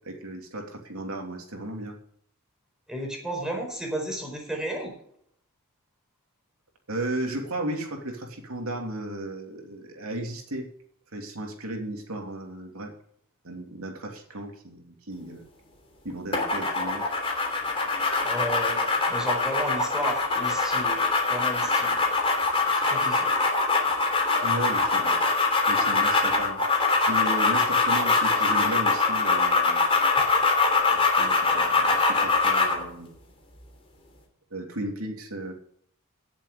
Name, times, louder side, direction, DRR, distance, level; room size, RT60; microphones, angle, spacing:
voice 1, 0.0-2.0 6.9-10.7 11.1-12.9 13.4-15.4 16.0-17.1 24.4-25.2 25.7-26.6 27.1-29.8 30.9-33.1 34.5-35.5, right 1 dB, 75° right, 2 dB, 3.1 m, -35 dB
voice 2, 2.9-4.9 18.2-21.0 21.3-22.0 22.7-23.3, right 1 dB, 5° right, 1 dB, 4.5 m, -33 dB
sound 1, 16.3-32.8, left 3 dB, 25° left, 3.2 m, -23 dB
17.0 x 7.6 x 5.0 m, 0.67 s
head